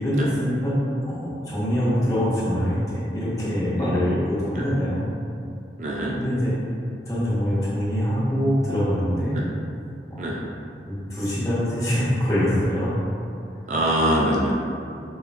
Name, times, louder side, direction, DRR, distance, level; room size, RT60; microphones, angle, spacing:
voice 1, 0.0-5.0 6.2-6.5 7.1-9.4 10.1-10.3 10.8-12.9, equal, 20° left, -10 dB, 1.0 m, -24 dB
voice 2, 3.8-4.1 4.6-4.7 5.8-6.1 9.3-9.4 10.2-10.4 13.7-14.5, right 1 dB, 45° right, -3 dB, 0.4 m, -24 dB
6.3 x 2.2 x 2.3 m, 2.5 s
head